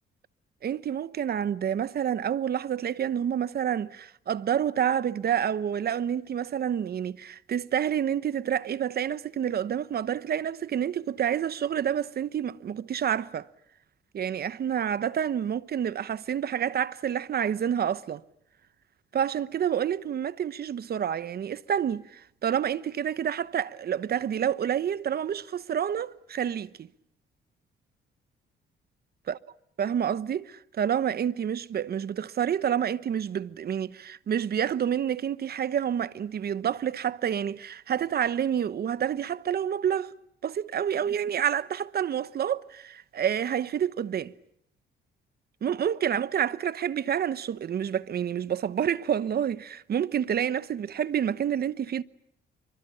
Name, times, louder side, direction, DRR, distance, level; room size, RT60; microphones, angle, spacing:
voice 1, 0.6-13.5 14.1-18.2 19.1-26.9 29.8-40.1 40.4-44.3 45.6-52.0, right 9 dB, 50° right, 1.0 m, -28 dB
27.5 x 24.5 x 8.6 m
cardioid pair, 90°, 20 cm